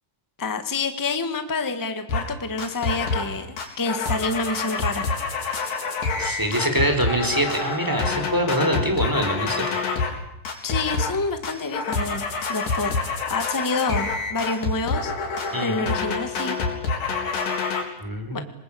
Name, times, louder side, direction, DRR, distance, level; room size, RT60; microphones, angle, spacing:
voice 1, 0.4-5.1 5.4-5.8 10.6-13.0 13.3-15.1 15.6-16.6 18.3-18.4, left 3 dB, 15° left, 8 dB, 0.7 m, -28 dB
sound 1, 2.1-2.3 2.6-3.3 3.6-10.2 10.5-11.2 11.4-17.8, left 4 dB, 80° left, 5.7 m, -27 dB
voice 2, 6.2-9.6 15.5-15.8 18.0-18.4, right 1 dB, 5° right, 5 dB, 4.1 m, -24 dB
27.0 x 20.5 x 8.7 m, 0.82 s
omnidirectional pair, 3.9 m